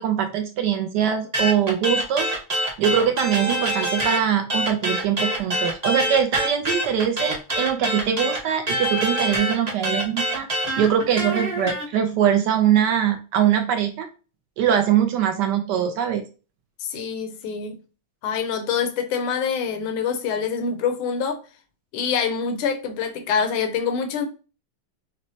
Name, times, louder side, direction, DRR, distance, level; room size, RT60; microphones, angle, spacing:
voice 1, 0.0-2.3 2.8-10.5 10.8-14.1 14.6-16.2, right 9 dB, 75° right, 1.0 m, -22 dB
sound 1, 1.3-4.2 4.5-11.8, right 1 dB, 35° right, 0.6 m, -25 dB
voice 2, 16.8-17.8 18.2-21.4 21.9-24.3, left 6 dB, 85° left, 1.5 m, -25 dB
6.0 x 2.2 x 2.7 m
omnidirectional pair, 2.3 m